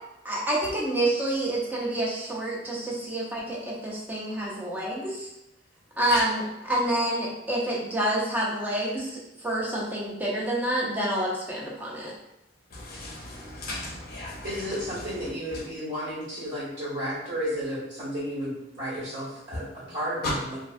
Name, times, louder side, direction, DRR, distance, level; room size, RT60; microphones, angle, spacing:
voice 1, 0.2-5.3 6.0-12.1, right 1 dB, 10° right, -5 dB, 0.4 m, -28 dB
voice 2, 12.7-14.6 20.2-20.3, left 2 dB, 55° left, -2 dB, 0.6 m, -35 dB
voice 3, 14.4-20.6, equal, 75° right, -8 dB, 1.2 m, -33 dB
2.4 x 2.2 x 2.4 m, 0.89 s
head